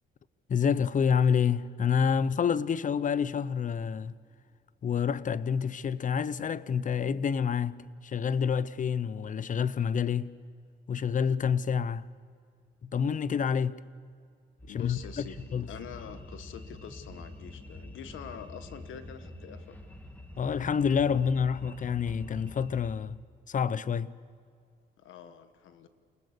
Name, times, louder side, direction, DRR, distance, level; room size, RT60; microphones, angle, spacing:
voice 1, 0.5-4.2 4.8-10.4 10.9-12.1 12.8-13.8 14.7-15.2 15.5-15.7 20.4-23.2 23.5-24.1, left 7 dB, 40° left, 0.7 m, -28 dB
voice 2, 14.6-19.8 21.1-21.3 25.0-25.9, left 8 dB, 80° left, 1.6 m, -46 dB
sound 1, 14.6-23.0, left 1 dB, 10° left, 2.5 m, -46 dB
28.5 x 20.0 x 6.8 m
cardioid pair, 90°, 20 cm